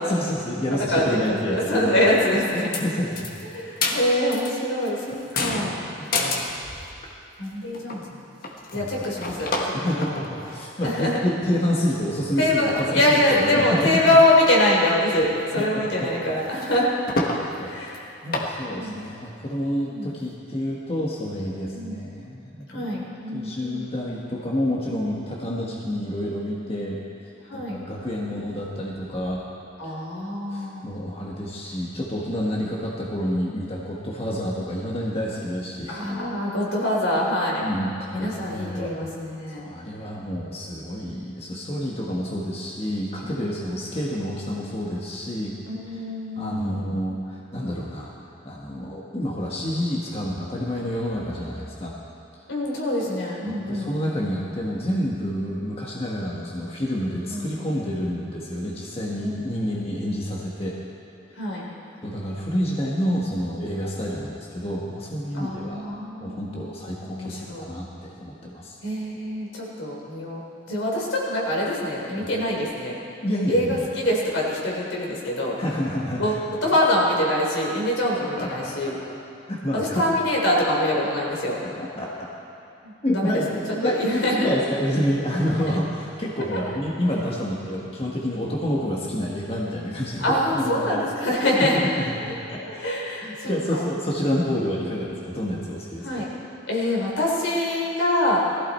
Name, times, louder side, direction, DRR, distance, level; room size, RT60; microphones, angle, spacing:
voice 1, 0.1-1.9 2.8-3.3 6.0-6.1 8.7-9.1 9.7-14.0 15.5-16.1 17.6-17.8 18.2-22.9 23.3-27.0 27.5-29.4 29.8-30.0 30.5-36.0 37.6-38.9 39.5-45.6 45.9-46.0 46.3-48.1 48.4-51.9 53.5-60.8 62.0-65.8 66.2-68.7 72.2-72.3 73.2-73.9 75.6-76.4 78.4-78.7 79.5-80.0 81.8-82.1 83.0-90.2 90.5-91.1 91.5-92.9 93.2-96.3, equal, 30° left, -4 dB, 1.5 m, -28 dB
voice 2, 0.9-2.7 3.5-5.8 7.4-8.2 8.7-10.2 10.8-11.2 12.4-16.9 17.3-18.0 18.7-19.0 19.8-20.1 21.7-22.0 22.7-24.2 27.5-27.8 29.8-30.9 34.2-34.4 35.9-37.6 38.1-39.6 45.7-46.8 52.5-53.9 57.3-57.5 59.2-59.5 61.3-61.6 65.3-66.7 67.1-67.7 68.8-70.4 70.7-73.0 73.5-75.6 76.2-79.0 79.7-81.6 82.8-83.4 83.8-84.5 85.7-85.8 90.2-91.8 92.2-92.3 92.6-93.8 96.0-96.3 96.7-98.4, left 1 dB, 75° left, -4 dB, 3.9 m, -24 dB
sound 1, 2.5-2.9 3.2-4.5 4.8-7.0 7.4-7.5 7.7-8.0 8.4-10.9 11.4-11.5 11.7-12.2 12.7-13.0 13.4-14.4 14.7-14.8 15.2-15.7 16.0-16.1 16.4-17.4 17.9-18.0 18.3-18.5, left 2 dB, 50° left, 1.5 m, -30 dB
19.5 x 15.0 x 4.4 m, 2.6 s
head